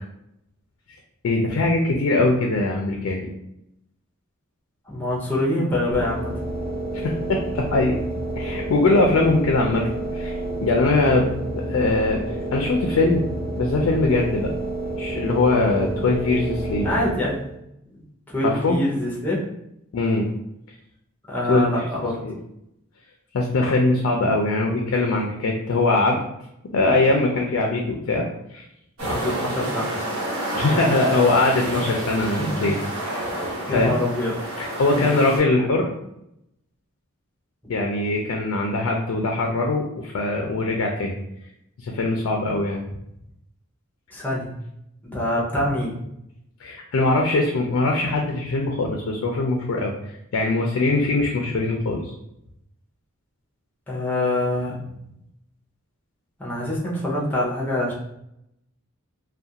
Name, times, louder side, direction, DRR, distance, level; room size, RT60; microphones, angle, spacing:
voice 1, 1.2-3.3 6.9-7.1 7.5-8.0 8.4-10.3 10.6-11.3 11.6-12.2 12.5-13.2 13.6-14.5 15.0-16.9 18.4-18.8 19.9-20.3 21.5-21.8 22.2-22.3 23.3-26.2 26.7-28.2 28.5-28.6 29.0-29.2 30.5-33.3 33.7-34.0 34.6-35.9 37.7-41.2 41.8-42.8 46.6-49.9 50.3-52.1, left 2 dB, 65° left, 1 dB, 0.4 m, -21 dB
voice 2, 4.9-6.3 11.1-11.4 16.8-17.4 18.3-19.4 21.3-22.2 29.1-30.0 32.6-32.7 33.7-34.3 34.9-35.2 44.1-44.5 45.0-46.0 53.9-54.8 56.4-57.9, left 1 dB, 10° left, -5 dB, 0.6 m, -25 dB
sound 1, 5.9-17.6, right 1 dB, 45° right, 0.5 m, -29 dB
sound 2, 29.0-35.4, right 1 dB, 75° right, 1.0 m, -29 dB
2.4 x 2.2 x 2.7 m, 0.81 s
head